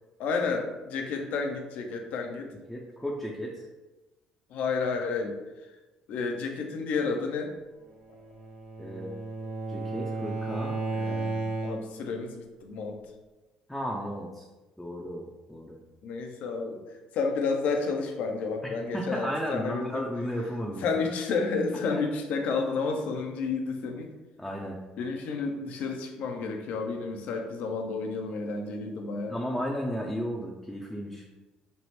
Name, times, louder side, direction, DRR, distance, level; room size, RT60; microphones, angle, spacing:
voice 1, 0.2-2.5 4.5-5.4 6.1-7.5 11.1-11.2 11.6-13.0 16.0-16.8 17.1-20.0 20.8-24.1 25.0-29.4, left 4 dB, 70° left, 4 dB, 0.5 m, -31 dB
voice 2, 2.7-3.7 8.8-9.1 9.7-11.4 13.7-14.5 14.8-15.8 18.9-20.9 21.9-22.0 24.4-24.8 29.3-31.2, equal, 5° left, -2 dB, 0.4 m, -34 dB
Bowed string instrument, 8.1-12.1, right 3 dB, 90° right, 1.2 m, -33 dB
3.2 x 2.0 x 2.9 m, 1.1 s
supercardioid pair, 70°, 3 cm